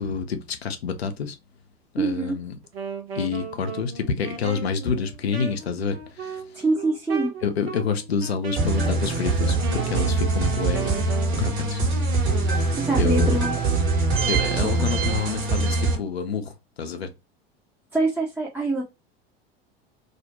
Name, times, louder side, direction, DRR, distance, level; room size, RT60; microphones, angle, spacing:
voice 1, 0.0-1.4 1.9-2.6 3.1-6.4 7.4-11.8 12.4-13.4 14.3-16.5 16.8-17.1, left 6 dB, 85° left, 0.5 m, -28 dB
voice 2, 2.0-2.4 6.6-7.3 12.8-13.5 17.9-18.8, right 2 dB, 5° right, 0.6 m, -24 dB
Wind instrument woodwind instrument, 2.6-11.4, right 6 dB, 80° right, 0.7 m, -36 dB
sound 1, 8.6-16.0, right 3 dB, 40° right, 1.1 m, -23 dB
2.5 x 2.1 x 2.7 m
figure-of-eight pair, 75°, 30 cm